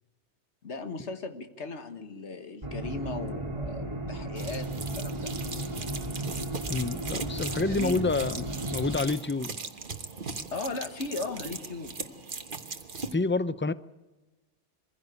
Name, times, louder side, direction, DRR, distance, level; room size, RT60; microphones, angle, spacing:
voice 1, 0.6-5.3 7.7-8.1 10.5-12.0, left 3 dB, 80° left, 8 dB, 1.7 m, -37 dB
sound 1, 2.6-9.0, right 1 dB, 25° right, 2.2 m, -35 dB
sound 2, 4.4-13.2, right 4 dB, 50° right, 1.4 m, -39 dB
voice 2, 6.7-9.5 13.1-13.7, left 3 dB, 15° left, 15 dB, 0.4 m, -28 dB
22.5 x 16.0 x 8.2 m, 1.1 s
omnidirectional pair, 1.2 m